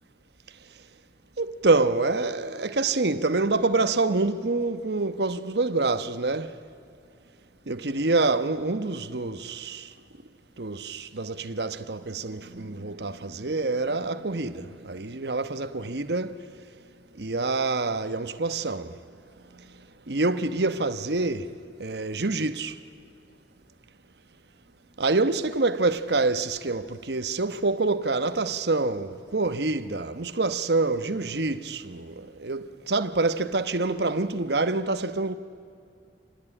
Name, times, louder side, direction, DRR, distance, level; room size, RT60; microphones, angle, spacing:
voice 1, 1.4-6.5 7.7-9.9 10.6-16.4 17.2-19.0 20.1-21.5 21.8-22.7 25.0-35.3, right 3 dB, 65° right, 1.1 m, -26 dB
27.0 x 20.0 x 9.9 m
head